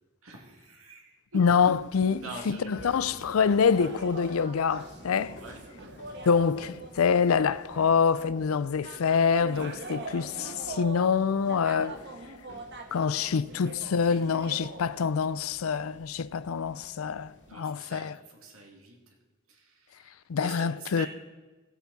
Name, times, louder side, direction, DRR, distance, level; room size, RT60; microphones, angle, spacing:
voice 1, 0.2-1.4 2.1-3.4 5.4-5.6 17.5-19.1 19.5-21.1, right 2 dB, 75° right, 2.4 m, -45 dB
voice 2, 1.3-5.4 6.3-12.0 12.9-18.1 20.3-21.1, left 6 dB, 80° left, 0.4 m, -26 dB
sound 1, 1.4-17.5, left 1 dB, 65° left, 2.1 m, -52 dB
sound 2, 2.3-8.6 8.8-15.4 15.7-15.8, right 2 dB, 55° right, 1.2 m, -43 dB
18.5 x 8.1 x 4.1 m
head